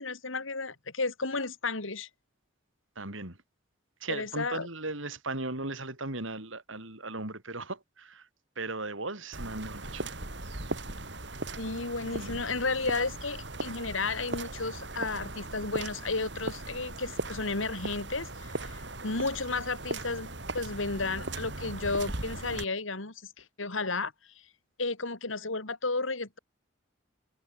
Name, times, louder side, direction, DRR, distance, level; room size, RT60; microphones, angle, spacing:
voice 1, 0.0-2.1 4.1-4.7 11.6-24.1 24.8-26.4, left 3 dB, 85° left, 3.1 m, -33 dB
voice 2, 3.0-3.4 4.0-8.3 8.6-10.1 12.1-12.4, right 2 dB, 85° right, 5.0 m, -37 dB
sound 1, 9.3-22.6, right 2 dB, 60° right, 4.2 m, -38 dB
head